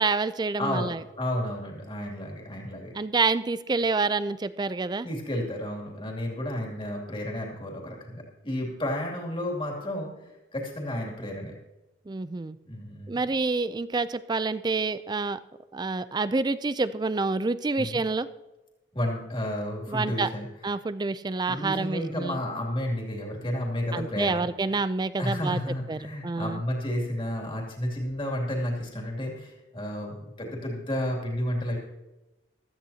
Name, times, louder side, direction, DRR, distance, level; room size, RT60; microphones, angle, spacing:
voice 1, 0.0-1.0 2.9-5.1 12.1-12.6 13.1-15.4 15.7-18.3 19.9-20.3 20.6-22.4 23.9-25.6 25.9-26.6, right 3 dB, 25° right, 14 dB, 0.4 m, -28 dB
voice 2, 0.6-0.9 1.2-2.9 5.0-11.6 12.7-13.2 17.8-18.0 18.9-20.5 21.5-24.8 25.2-31.8, left 1 dB, 30° left, -1 dB, 2.7 m, -32 dB
16.0 x 13.0 x 2.8 m, 1.0 s
head